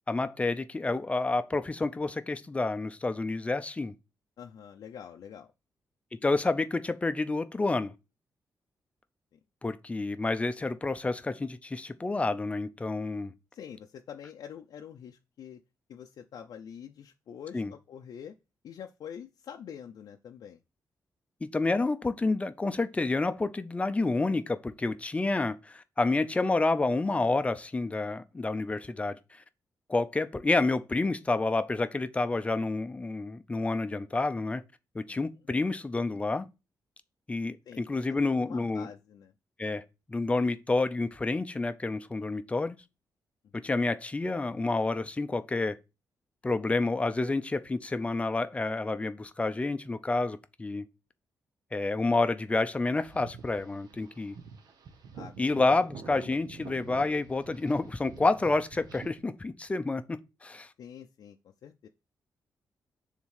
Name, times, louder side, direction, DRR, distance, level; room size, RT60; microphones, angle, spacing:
voice 1, 0.1-3.9 6.1-7.9 9.6-13.3 17.5-17.7 21.4-29.2 29.9-34.6 34.9-36.4 37.3-38.9 39.6-39.8 40.1-42.8 43.5-45.8 46.4-50.8 51.7-54.4 55.4-60.7, left 3 dB, 20° left, 0.6 m, -29 dB
voice 2, 4.4-5.5 13.5-15.6 15.9-18.3 18.6-20.6 35.1-35.2 37.7-37.8 38.1-39.3 43.6-43.8 55.1-55.9 60.8-61.4 61.6-61.9, left 8 dB, 75° left, 0.6 m, -46 dB
sound 1, 53.0-59.2, right 5 dB, 80° right, 1.2 m, -47 dB
7.2 x 3.6 x 6.5 m
wide cardioid pair, 140°, 7 cm